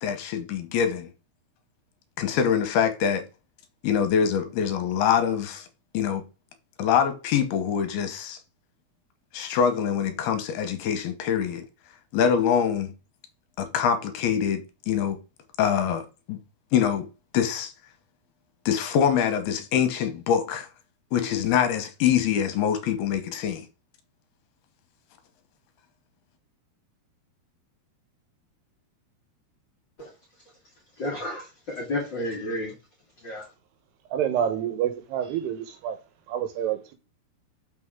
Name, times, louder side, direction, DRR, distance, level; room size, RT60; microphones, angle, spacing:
voice 1, 0.0-1.1 2.2-3.2 3.8-5.7 5.9-6.2 6.8-8.4 9.3-11.6 12.1-12.9 13.6-15.2 15.6-16.4 16.7-17.1 17.3-17.7 18.7-20.7 21.1-23.7, left 8 dB, 75° left, 2.8 m, -24 dB
voice 2, 31.0-32.7 33.2-33.4, left 1 dB, 45° left, 1.6 m, -31 dB
voice 3, 34.1-36.0 36.3-36.9, right 9 dB, 80° right, 3.2 m, -28 dB
6.8 x 6.1 x 3.7 m
omnidirectional pair, 4.7 m